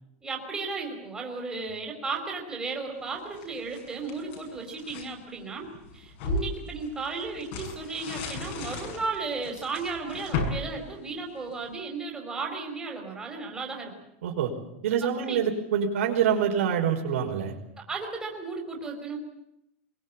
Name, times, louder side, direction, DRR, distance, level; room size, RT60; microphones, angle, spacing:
voice 1, 0.2-5.7 5.9-13.9 15.2-15.4 17.8-19.2, right 4 dB, 10° right, 1 dB, 4.5 m, -34 dB
sound 1, 3.1-5.1 5.6-11.7, left 3 dB, 55° left, 7.1 m, -35 dB
voice 2, 14.8-17.6, right 8 dB, 80° right, 3 dB, 5.2 m, -26 dB
22.5 x 22.5 x 8.8 m, 0.82 s
supercardioid pair, 165°, 7 cm